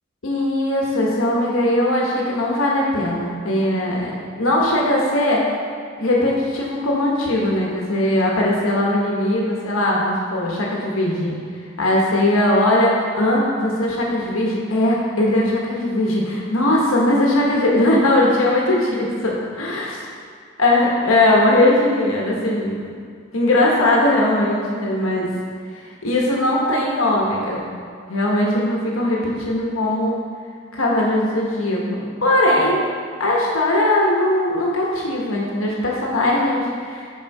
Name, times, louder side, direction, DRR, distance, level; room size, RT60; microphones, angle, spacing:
voice 1, 0.2-5.5 6.0-11.4 11.8-19.9 20.6-22.9 23.3-25.3 26.0-27.7 28.1-30.2 30.7-32.8 33.2-37.0, left 1 dB, 85° left, -3 dB, 1.3 m, -19 dB
6.3 x 5.4 x 4.7 m, 2.1 s
head